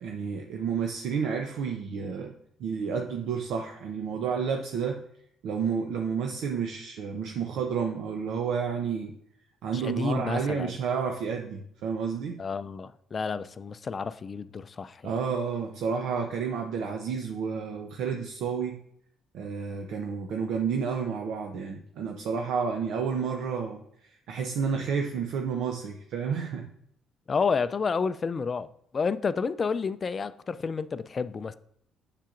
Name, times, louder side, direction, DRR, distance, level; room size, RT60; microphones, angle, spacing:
voice 1, 0.0-2.3 2.6-5.0 5.4-9.1 9.6-12.4 15.0-18.8 19.3-23.8 24.3-26.7, right 6 dB, 75° right, 0.6 m, -30 dB
voice 2, 9.7-10.7 12.4-15.1 27.3-28.7 28.9-31.5, left 5 dB, 40° left, 0.3 m, -30 dB
7.4 x 6.7 x 2.5 m
supercardioid pair, 75°, 0 cm